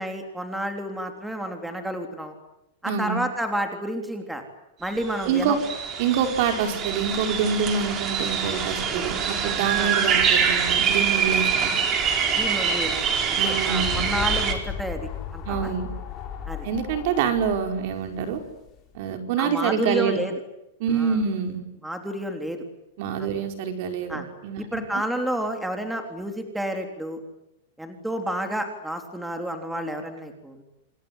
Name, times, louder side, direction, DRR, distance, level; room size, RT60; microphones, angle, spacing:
voice 1, 0.0-2.3 2.8-4.4 4.8-5.6 9.7-9.9 12.3-13.0 13.2-15.7 16.5-16.7 19.4-20.3 20.9-21.2 21.8-22.6 23.2-23.3 24.1-24.2 24.6-27.2 27.8-30.6, equal, 5° right, 4 dB, 3.5 m, -30 dB
voice 2, 2.8-3.2 5.3-5.6 6.0-11.7 13.4-14.1 15.5-15.9 16.6-18.4 18.9-20.2 20.8-21.6 23.0-24.8, right 7 dB, 55° right, 5 dB, 5.4 m, -26 dB
sound 1, 4.9-5.0 5.2-14.5, right 7 dB, 30° right, 4.8 m, -25 dB
sound 2, 13.3-18.9, left 9 dB, 30° left, 6.2 m, -35 dB
27.5 x 21.5 x 10.0 m, 0.87 s
supercardioid pair, 145°, 0 cm